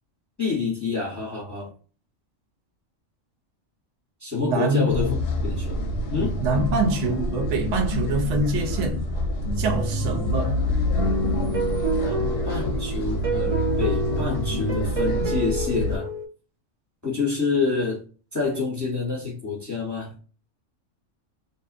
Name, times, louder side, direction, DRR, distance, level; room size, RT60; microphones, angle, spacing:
voice 1, 0.4-1.7 4.2-5.1 5.4-5.8 6.1-6.4 12.0-16.1 17.0-18.0 18.3-20.2, left 4 dB, 15° left, 0.8 m, -27 dB
voice 2, 4.4-4.9 6.4-9.0 9.6-10.6, right 2 dB, 75° right, 0.9 m, -25 dB
sound 1, 4.9-16.0, left 1 dB, 65° left, 0.7 m, -27 dB
sound 2, 10.9-16.3, right 2 dB, 55° right, 0.4 m, -28 dB
2.5 x 2.1 x 2.4 m
omnidirectional pair, 1.3 m